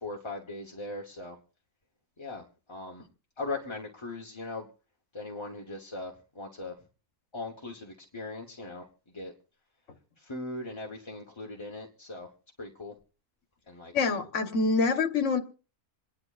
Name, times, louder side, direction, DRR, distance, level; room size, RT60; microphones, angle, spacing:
voice 1, 0.0-1.4 2.2-2.4 2.7-3.0 3.4-4.7 5.1-6.7 7.3-8.8 9.1-9.3 10.2-12.3 12.6-12.9 13.7-14.1, left 2 dB, 20° left, 1.0 m, -39 dB
voice 2, 13.9-15.4, left 4 dB, 55° left, 1.5 m, -26 dB
28.0 x 10.5 x 2.5 m
omnidirectional pair, 1.5 m